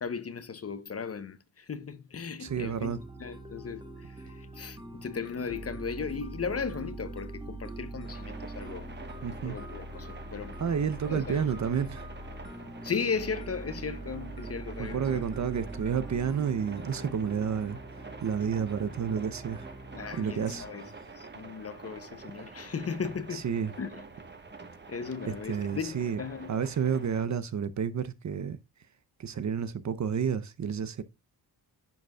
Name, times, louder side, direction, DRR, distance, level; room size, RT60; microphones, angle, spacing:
voice 1, 0.0-2.9 3.2-8.9 9.4-10.6 11.0-11.4 12.8-15.2 19.9-20.9 21.2-23.4 23.8-23.9 24.9-26.5, left 6 dB, 35° left, 0.8 m, -36 dB
voice 2, 2.4-3.0 9.2-9.6 10.6-12.1 14.8-17.8 18.2-19.7 20.1-20.7 23.3-23.7 25.3-26.2 26.5-28.6 29.2-31.0, right 7 dB, 45° right, 0.7 m, -30 dB
sound 1, 2.5-20.6, right 2 dB, 10° right, 1.3 m, -43 dB
sound 2, 8.0-27.2, right 4 dB, 25° right, 1.3 m, -47 dB
10.5 x 5.1 x 2.3 m
cardioid pair, 80°, 40 cm